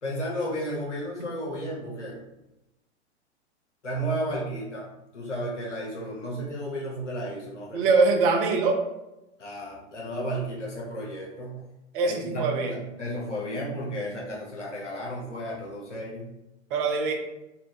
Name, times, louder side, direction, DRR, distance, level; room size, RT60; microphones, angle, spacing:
voice 1, 0.0-2.2 3.8-4.9 5.1-7.8 9.4-11.6 12.0-16.3, equal, 90° left, -3 dB, 1.1 m, -33 dB
voice 2, 7.7-8.8 11.9-12.8 16.7-17.1, right 4 dB, 50° right, 3 dB, 0.9 m, -23 dB
4.3 x 2.4 x 3.6 m, 0.92 s
hypercardioid pair, 105°, 35 cm